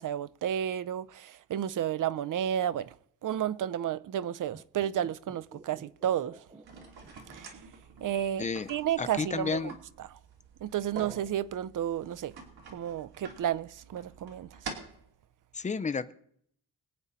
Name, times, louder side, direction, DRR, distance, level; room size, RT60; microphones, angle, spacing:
voice 1, 0.0-2.9 3.2-6.4 7.3-7.5 8.0-9.7 10.0-10.2 10.6-12.3 12.7-14.5, right 10 dB, 60° right, 0.6 m, -32 dB
sound 1, 4.4-7.8 8.1-8.2, right 2 dB, 15° right, 0.7 m, -53 dB
sound 2, 6.6-15.1, right 5 dB, 80° right, 2.8 m, -47 dB
voice 2, 9.0-9.7 15.5-16.1, left 5 dB, 20° left, 0.5 m, -31 dB
24.0 x 8.7 x 4.1 m
wide cardioid pair, 155°, 37 cm